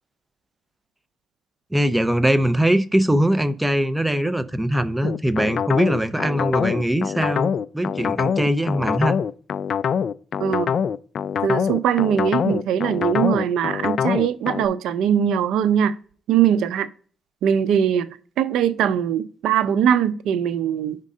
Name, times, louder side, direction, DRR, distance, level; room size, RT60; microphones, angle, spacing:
voice 1, 1.7-9.2, right 1 dB, 5° right, 0.6 m, -21 dB
sound 1, 5.0-14.7, left 7 dB, 55° left, 0.3 m, -24 dB
voice 2, 10.4-10.7 11.4-15.9 16.3-16.9 17.4-21.0, right 9 dB, 85° right, 0.5 m, -21 dB
5.2 x 3.7 x 5.3 m
cardioid pair, 90°, 0 cm